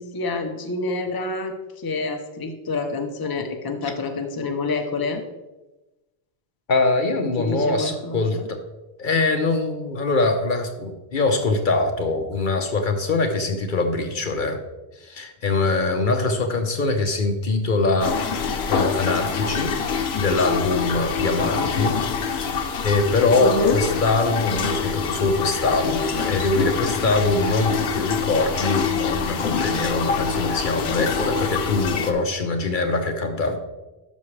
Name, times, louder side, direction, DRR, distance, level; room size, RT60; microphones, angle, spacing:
voice 1, 0.0-5.2 7.4-8.5 23.3-23.8, left 3 dB, 25° left, 4 dB, 0.7 m, -27 dB
voice 2, 6.7-8.6 9.0-14.6 15.0-18.2 18.7-19.8 20.2-22.0 22.4-33.6, left 3 dB, 55° left, 6 dB, 0.9 m, -23 dB
sound 1, 18.0-32.1, left 6 dB, 80° left, 1.0 m, -25 dB
12.5 x 5.9 x 3.3 m, 1.1 s
omnidirectional pair, 1.0 m